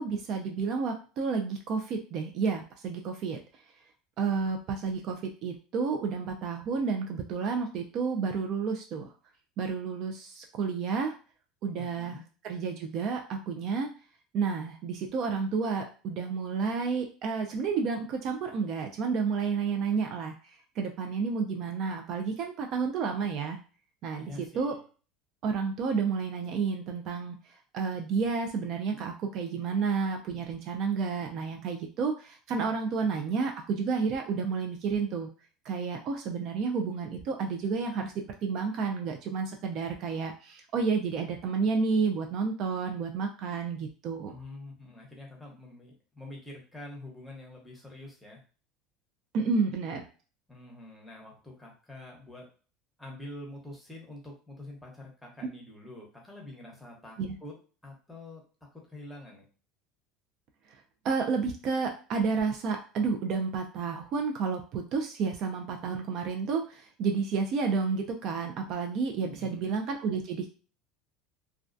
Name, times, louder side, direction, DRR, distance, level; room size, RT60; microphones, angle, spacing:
voice 1, 0.0-3.4 4.2-9.0 9.6-11.2 11.6-13.9 14.3-20.4 20.8-23.6 24.0-24.8 25.4-27.4 27.7-35.3 35.6-44.3 49.3-50.0 57.2-57.3 61.0-70.5, right 5 dB, 50° right, 3 dB, 0.4 m, -30 dB
voice 2, 11.8-12.2 24.2-24.8 44.3-48.4 50.5-52.5 53.0-57.5 57.8-58.4 58.9-59.5 69.3-69.8, left 2 dB, 5° left, -2 dB, 0.9 m, -46 dB
2.2 x 2.2 x 2.5 m, 0.37 s
supercardioid pair, 130°, 0 cm